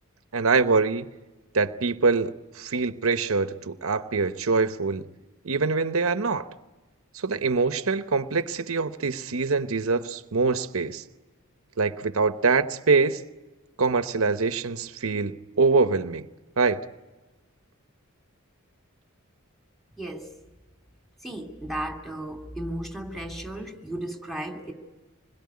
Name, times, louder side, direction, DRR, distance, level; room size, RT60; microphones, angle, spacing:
voice 1, 0.3-1.1 1.5-5.0 5.4-6.5 7.1-11.0 11.8-13.2 13.8-16.2 16.6-16.8, right 4 dB, 75° right, 0.9 m, -24 dB
voice 2, 20.0-20.3 21.2-24.7, right 1 dB, ahead, 2.7 m, -35 dB
26.0 x 21.0 x 9.6 m
head